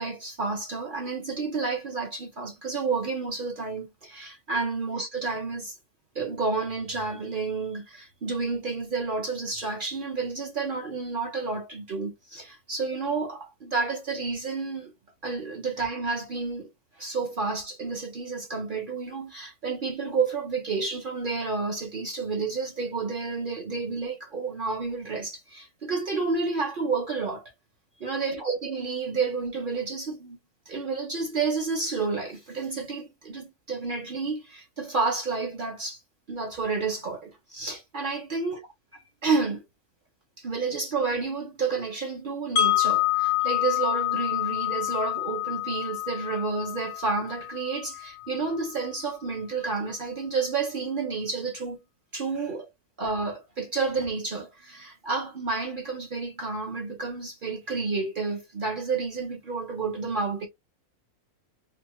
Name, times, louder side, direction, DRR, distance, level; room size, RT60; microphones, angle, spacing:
voice 1, 0.0-5.7 6.1-14.9 15.2-16.7 17.0-27.5 28.0-30.4 30.7-36.0 36.3-38.6 38.9-39.6 40.4-51.8 52.1-52.7 53.0-60.5, right 4 dB, 50° right, 0.7 m, -30 dB
Wind chime, 42.6-48.5, left 15 dB, 65° left, 0.7 m, -27 dB
3.4 x 2.1 x 3.1 m
omnidirectional pair, 1.6 m